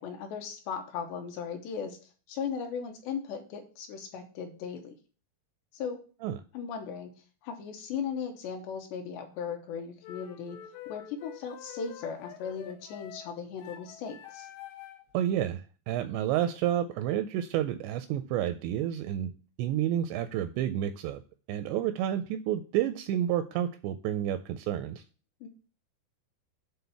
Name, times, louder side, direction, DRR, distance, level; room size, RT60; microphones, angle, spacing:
voice 1, 0.0-2.0 2.3-4.9 5.7-6.0 6.5-7.1 7.4-10.6 10.9-14.5 25.4-25.5, left 6 dB, 75° left, 4 dB, 3.0 m, -37 dB
sound 1, 10.0-15.1, left 11 dB, 90° left, 3.5 m, -47 dB
voice 2, 15.1-19.3 19.6-21.2 21.5-25.0, right 11 dB, 85° right, 10 dB, 2.5 m, -30 dB
8.7 x 3.8 x 6.9 m, 0.38 s
omnidirectional pair, 5.4 m